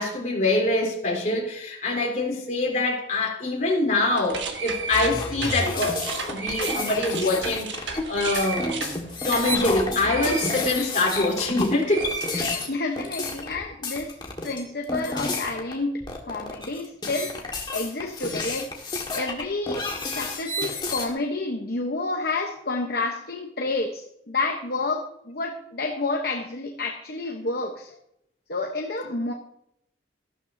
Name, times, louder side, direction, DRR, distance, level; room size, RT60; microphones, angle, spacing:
voice 1, 0.0-9.0 9.2-12.1, left 2 dB, 40° left, -2 dB, 3.6 m, -25 dB
sound 1, 4.1-11.5 11.8-13.0, right 5 dB, 75° right, 1.5 m, -34 dB
sound 2, 4.9-15.7 16.0-21.1, left 2 dB, 25° left, 1.8 m, -30 dB
voice 2, 12.3-14.2 14.4-17.4 17.7-18.7 19.1-19.9 20.1-28.0 28.5-29.3, left 3 dB, 55° left, 2 dB, 1.0 m, -29 dB
14.0 x 12.5 x 2.7 m, 0.78 s
head